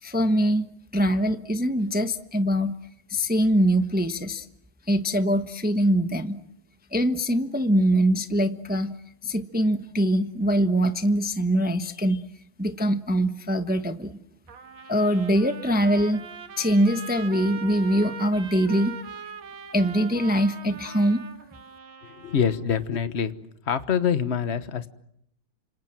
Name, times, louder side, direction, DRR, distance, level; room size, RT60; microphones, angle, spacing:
voice 1, 0.0-2.7 3.1-4.5 4.9-6.4 6.9-9.0 9.2-12.2 12.6-14.1 14.9-16.2 16.6-19.0 19.7-21.2, equal, 10° right, 8 dB, 0.7 m, -23 dB
Trumpet, 14.5-22.6, right 6 dB, 70° right, 2.4 m, -41 dB
voice 2, 22.0-23.3 23.6-24.9, left 7 dB, 40° left, 11 dB, 1.2 m, -25 dB
29.5 x 26.5 x 7.6 m, 0.74 s
omnidirectional pair, 2.3 m